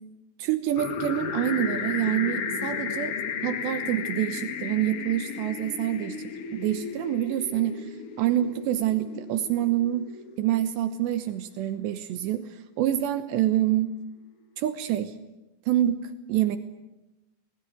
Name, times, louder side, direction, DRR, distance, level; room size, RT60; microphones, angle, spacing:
voice 1, 0.4-3.2 3.4-6.2 6.5-10.1 10.4-14.0 14.6-15.1 15.7-16.6, right 12 dB, 80° right, 9 dB, 3.2 m, -27 dB
sound 1, 0.8-10.6, left 6 dB, 70° left, 1.4 m, -34 dB
28.0 x 19.5 x 9.4 m, 1.0 s
omnidirectional pair, 5.0 m